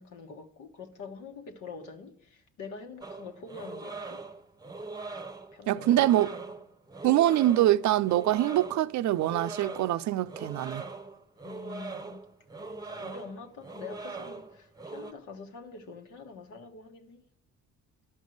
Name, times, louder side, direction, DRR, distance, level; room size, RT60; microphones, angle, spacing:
voice 1, 0.0-4.2 5.5-6.5 11.4-12.2 12.6-17.2, left 4 dB, 80° left, 1.5 m, -45 dB
sound 1, 3.0-15.1, right 3 dB, 15° right, 0.8 m, -41 dB
voice 2, 5.7-6.3 7.0-10.8, right 13 dB, 70° right, 0.5 m, -24 dB
11.0 x 5.4 x 7.8 m
cardioid pair, 90°, 30 cm